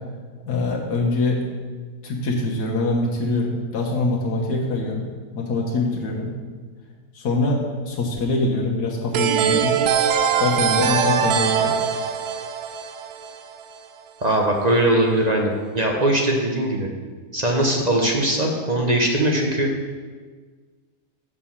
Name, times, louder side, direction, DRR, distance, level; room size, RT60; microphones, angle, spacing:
voice 1, 0.4-1.4 2.0-5.1 5.3-6.3 7.1-9.8 10.4-11.7, left 2 dB, 75° left, -3 dB, 1.7 m, -23 dB
sound 1, 9.1-13.8, right 7 dB, 80° right, 1.2 m, -22 dB
voice 2, 14.2-16.9 17.3-19.7, right 1 dB, 35° right, 0 dB, 0.8 m, -20 dB
7.7 x 4.9 x 7.1 m, 1.5 s
omnidirectional pair, 1.7 m